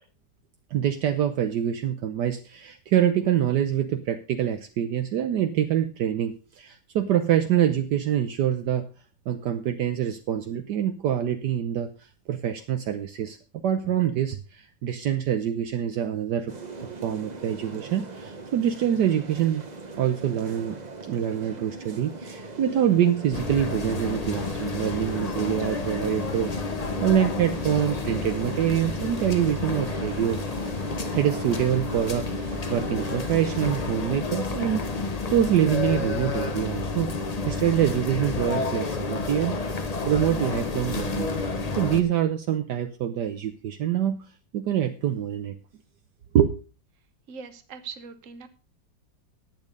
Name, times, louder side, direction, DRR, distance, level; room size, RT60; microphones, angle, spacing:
voice 1, 0.7-8.9 9.3-13.4 13.6-16.5 17.0-19.6 20.0-20.7 21.1-26.5 27.0-30.4 31.1-39.6 40.0-44.2 44.5-45.6 46.3-46.6, right 10 dB, 70° right, 8 dB, 1.3 m, -25 dB
sound 1, 16.5-33.9, right 3 dB, 30° right, 1.0 m, -41 dB
sound 2, 23.3-42.0, left 3 dB, 30° left, 0.7 m, -30 dB
voice 2, 47.3-48.5, right 5 dB, 50° right, 10 dB, 1.4 m, -41 dB
10.5 x 8.8 x 5.2 m, 0.36 s
omnidirectional pair, 2.0 m